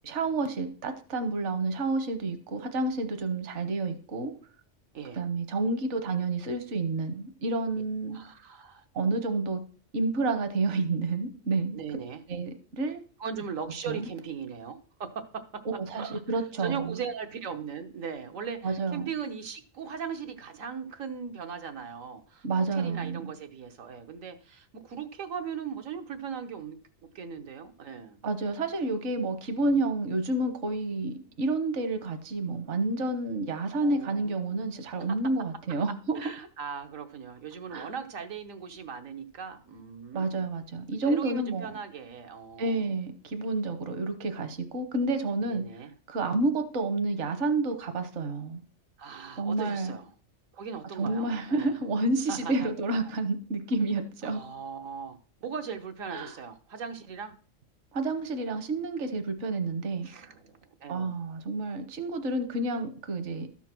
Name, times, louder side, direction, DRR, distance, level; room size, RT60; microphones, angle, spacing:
voice 1, 0.0-4.3 5.2-8.2 8.9-9.6 9.9-11.8 12.3-13.0 13.9-14.1 15.6-17.0 18.6-19.1 22.4-23.2 28.2-36.2 37.7-37.9 40.1-41.7 42.6-45.6 46.1-48.6 49.4-49.9 51.0-54.4 56.1-56.3 57.9-60.1 60.9-63.5, right 2 dB, 65° right, 1.3 m, -29 dB
voice 2, 8.1-8.8 11.7-12.2 13.2-15.6 15.9-22.4 22.7-26.8 27.1-28.2 33.8-34.6 35.1-35.2 35.7-35.8 36.1-40.5 41.1-42.9 45.5-45.9 49.0-50.1 50.5-51.7 52.3-52.7 53.0-53.1 54.2-57.3 60.0-61.2, right 6 dB, 85° right, 1.5 m, -39 dB
13.0 x 4.6 x 5.9 m
omnidirectional pair, 1.3 m